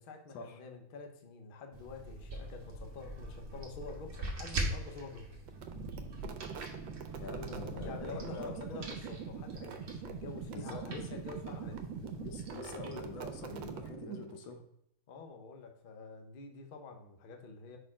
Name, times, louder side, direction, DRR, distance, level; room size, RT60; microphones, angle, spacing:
voice 1, 0.0-5.4 7.8-11.8 14.4-14.5 15.1-17.8, left 4 dB, 60° left, 3 dB, 0.5 m, -47 dB
sound 1, 1.7-13.9, right 1 dB, 50° right, 1.2 m, -43 dB
sound 2, 5.5-14.5, right 7 dB, 80° right, 1.3 m, -43 dB
voice 2, 7.2-8.9 10.5-11.0 12.0-14.7, left 4 dB, 85° left, 6 dB, 1.6 m, -45 dB
5.2 x 4.2 x 4.2 m, 0.76 s
omnidirectional pair, 2.0 m